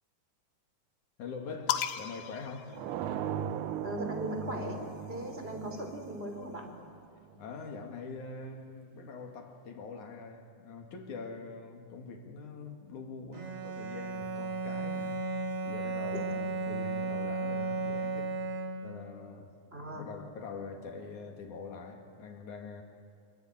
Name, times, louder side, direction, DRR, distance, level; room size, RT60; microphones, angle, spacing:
voice 1, 1.2-2.8 7.4-15.4 15.6-18.4 18.8-19.5 19.8-22.8, left 4 dB, 60° left, 3.6 m, -44 dB
sound 1, 1.7-3.5 4.6-6.3, left 10 dB, 80° left, 2.6 m, -38 dB
sound 2, 2.7-7.5, right 9 dB, 75° right, 2.2 m, -38 dB
voice 2, 3.8-4.8 5.1-6.7 16.1-16.2 19.7-20.1, equal, 15° right, 3.4 m, -38 dB
Bowed string instrument, 13.3-19.1, right 3 dB, 45° right, 4.0 m, -35 dB
26.0 x 23.5 x 9.0 m
omnidirectional pair, 4.0 m